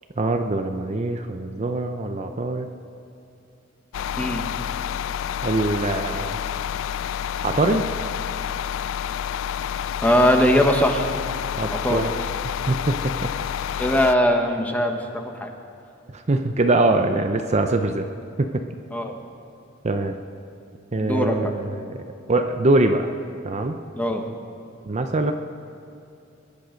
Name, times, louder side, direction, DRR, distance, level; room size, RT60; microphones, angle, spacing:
voice 1, 0.2-2.7 5.4-6.4 7.4-7.9 11.6-12.1 12.4-13.3 16.1-18.1 18.4-18.6 19.8-20.2 20.9-21.9 22.3-23.1 23.4-23.8 24.9-25.3, right 2 dB, 35° right, 6 dB, 0.6 m, -23 dB
sound 1, 3.9-14.2, left 9 dB, 70° left, 0.3 m, -29 dB
voice 2, 10.0-11.1 11.7-12.0 13.8-15.5 18.9-19.2 21.0-21.5 24.0-24.2, equal, 10° left, 4 dB, 1.2 m, -20 dB
22.0 x 11.0 x 5.1 m, 2.7 s
head